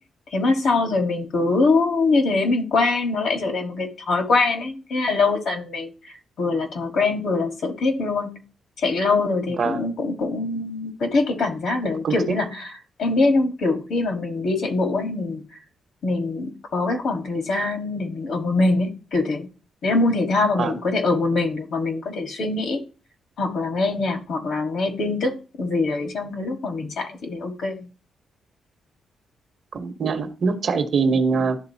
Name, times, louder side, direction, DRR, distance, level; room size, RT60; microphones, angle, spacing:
voice 1, 0.3-8.3 8.8-12.7 13.0-15.4 16.0-19.5 19.8-22.8 23.4-27.9, left 3 dB, 60° left, 1.4 m, -23 dB
voice 2, 9.6-9.9 12.0-12.3 20.6-20.7 29.7-31.6, right 4 dB, 45° right, 1.0 m, -23 dB
11.5 x 3.9 x 2.7 m
wide cardioid pair, 165°, 0 cm